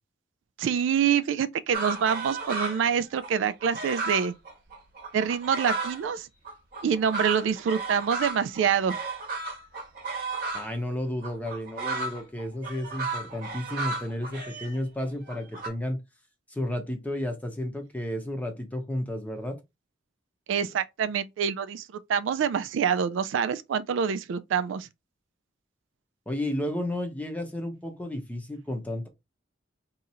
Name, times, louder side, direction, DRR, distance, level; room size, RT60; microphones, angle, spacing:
voice 1, 0.6-4.3 5.1-6.3 6.8-9.0 20.5-24.9, right 7 dB, 75° right, 0.3 m, -26 dB
sound 1, 1.7-2.9 3.2-6.0 6.4-10.7 11.2-15.7, right 3 dB, 50° right, 0.9 m, -34 dB
voice 2, 10.5-16.0 16.5-19.6 26.3-29.1, left 1 dB, 10° left, 0.7 m, -32 dB
2.8 x 2.5 x 4.1 m
head